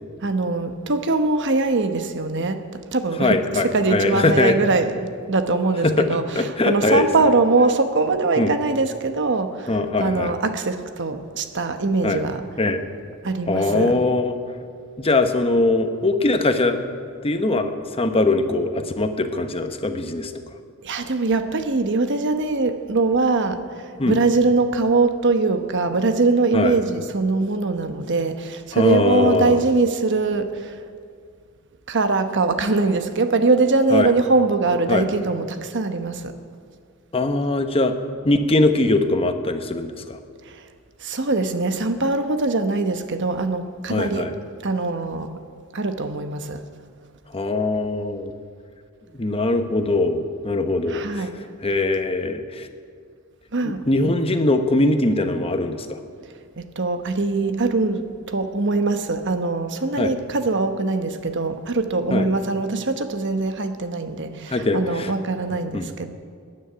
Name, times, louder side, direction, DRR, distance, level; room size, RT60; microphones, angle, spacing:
voice 1, 0.2-3.4 3.6-12.4 13.2-14.0 20.8-30.8 31.9-36.4 40.5-40.6 41.0-44.3 44.6-45.4 45.7-46.6 50.9-51.3 53.5-54.1 56.6-66.1, right 3 dB, 55° right, 8 dB, 1.1 m, -22 dB
voice 2, 3.2-4.6 5.8-7.1 8.4-8.5 9.7-10.3 12.0-12.2 12.6-12.8 13.5-14.4 15.0-16.8 17.2-20.4 24.0-24.2 26.5-26.7 28.7-29.7 33.9-34.1 34.9-35.1 37.1-37.9 38.2-40.2 43.9-44.3 47.3-48.4 49.1-51.3 51.6-52.7 53.6-56.0 60.0-60.1 62.1-62.3 64.5-65.1 65.7-65.9, left 2 dB, 25° left, 7 dB, 1.0 m, -21 dB
15.0 x 9.9 x 9.0 m, 2.2 s
head